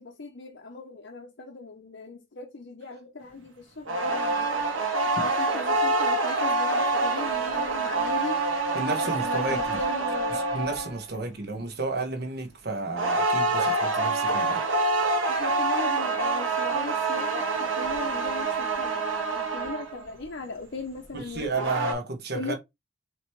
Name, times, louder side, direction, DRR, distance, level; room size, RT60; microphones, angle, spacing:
voice 1, 0.0-4.7 5.1-8.4 9.2-10.4 15.3-19.1 19.4-21.7 22.3-22.6, left 3 dB, 55° left, 0.7 m, -38 dB
sound 1, 3.8-11.0 12.9-20.0 21.3-21.9, right 3 dB, 70° right, 1.4 m, -26 dB
voice 2, 8.7-9.8 10.3-14.8 21.1-22.6, right 3 dB, 50° right, 1.2 m, -32 dB
5.1 x 3.0 x 3.1 m
head